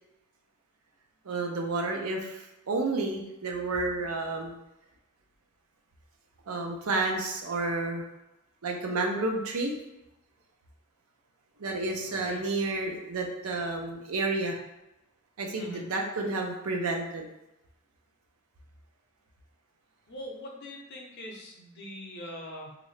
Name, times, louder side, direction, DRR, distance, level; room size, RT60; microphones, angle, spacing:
voice 1, 1.2-4.5 6.5-8.0 8.6-9.8 11.6-14.6 15.4-17.3, right 2 dB, 85° right, 2 dB, 0.6 m, -30 dB
voice 2, 20.1-22.8, left 1 dB, 50° left, -1 dB, 0.7 m, -42 dB
3.1 x 2.5 x 3.1 m, 0.94 s
head